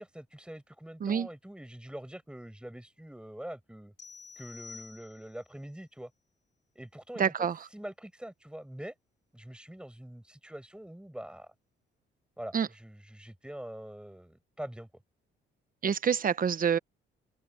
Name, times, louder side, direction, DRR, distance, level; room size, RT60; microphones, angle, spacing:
voice 1, 0.0-3.9 4.4-6.1 6.7-7.5 7.7-8.9 9.3-11.5 12.4-14.9, right 1 dB, 5° right, 7.8 m, -44 dB
sound 1, 4.0-5.5, left 5 dB, 65° left, 6.2 m, -49 dB
voice 2, 7.2-7.6 12.5-12.7 15.8-16.8, right 7 dB, 45° right, 1.1 m, -27 dB
open air
cardioid pair, 90°, 20 cm